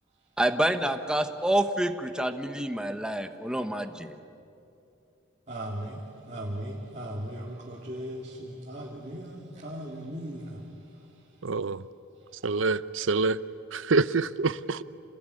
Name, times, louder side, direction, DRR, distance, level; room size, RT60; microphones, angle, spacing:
voice 1, 0.4-4.2, right 1 dB, 5° right, 7 dB, 1.0 m, -28 dB
voice 2, 5.5-6.0 6.3-9.4 9.6-10.5, right 1 dB, 35° right, -5 dB, 2.9 m, -37 dB
voice 3, 11.4-11.8 12.4-13.4 13.7-14.8, right 3 dB, 75° right, 16 dB, 0.7 m, -26 dB
27.5 x 20.0 x 9.9 m, 2.7 s
head